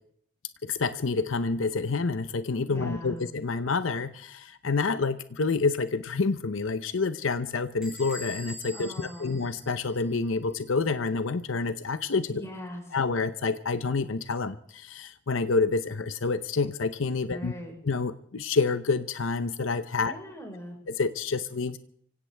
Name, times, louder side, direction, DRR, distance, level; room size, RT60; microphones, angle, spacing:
voice 1, 0.6-12.4 12.9-17.5 17.8-20.1 20.9-21.8, left 4 dB, 85° left, 12 dB, 0.7 m, -28 dB
voice 2, 2.7-3.2 8.7-9.4 12.3-12.8 17.2-17.7 20.0-20.8, left 1 dB, 15° left, 0 dB, 4.8 m, -40 dB
Bell / Door, 7.8-10.3, equal, ahead, 5.5 m, -45 dB
25.0 x 16.5 x 3.4 m, 0.64 s
head